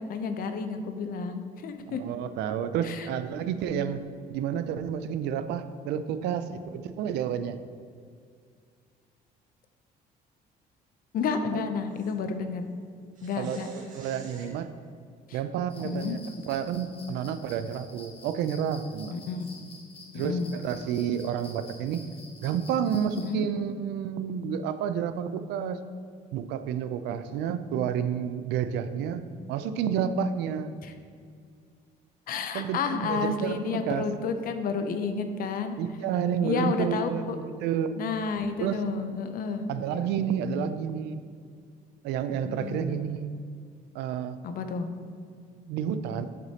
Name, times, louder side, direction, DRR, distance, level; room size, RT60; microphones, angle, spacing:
voice 1, 0.0-2.0 2.8-3.1 11.1-12.7 13.2-13.7 15.3-15.4 15.8-16.2 19.1-19.5 20.1-20.5 23.2-23.4 30.8-30.9 32.3-35.8 36.4-37.4 38.0-39.7 42.4-43.0 44.4-44.9, left 5 dB, 60° left, 8 dB, 0.6 m, -31 dB
voice 2, 1.9-4.0 4.3-7.6 11.5-11.6 13.4-14.7 15.3-16.2 16.5-19.2 20.1-22.0 22.4-25.8 26.3-29.2 29.5-30.7 32.5-34.1 35.8-38.0 38.6-38.9 39.7-41.2 42.0-43.3 43.9-44.4 45.6-46.2, right 8 dB, 85° right, 11 dB, 0.4 m, -30 dB
sound 1, 11.9-12.1 13.1-14.5 16.4-16.5 17.1-17.2 19.4-19.6, right 3 dB, 50° right, 1.8 m, -50 dB
sound 2, 15.7-23.3, left 3 dB, 35° left, 1.2 m, -50 dB
7.8 x 6.3 x 2.9 m, 2.1 s
cardioid pair, 110°, 17 cm